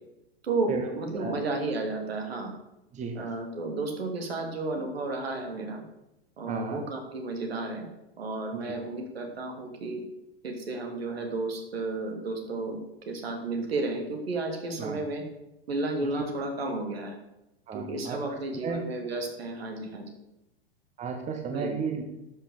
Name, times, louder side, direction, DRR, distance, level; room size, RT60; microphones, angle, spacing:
voice 1, 0.4-2.5 3.2-5.8 6.4-7.9 8.2-10.0 10.4-12.8 13.1-15.2 15.7-17.2 17.7-20.0 21.5-21.7, right 2 dB, 75° right, 3 dB, 2.9 m, -32 dB
voice 2, 2.9-3.3 6.5-6.8 8.6-8.8 14.8-15.0 16.0-16.1 17.7-18.8 21.0-22.0, right 5 dB, 25° right, 4 dB, 1.5 m, -34 dB
11.5 x 6.2 x 6.5 m, 0.90 s
figure-of-eight pair, 105°, 31 cm